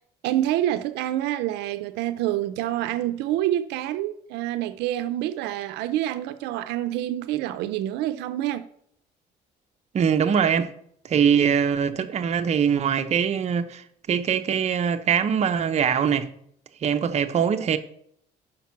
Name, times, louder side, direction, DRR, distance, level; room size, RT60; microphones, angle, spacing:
voice 1, 0.2-8.6, right 13 dB, 85° right, 0.5 m, -27 dB
voice 2, 9.9-10.7 11.0-16.3 16.8-17.8, right 7 dB, 40° right, 0.7 m, -22 dB
5.9 x 5.1 x 5.8 m
cardioid pair, 110°, 17 cm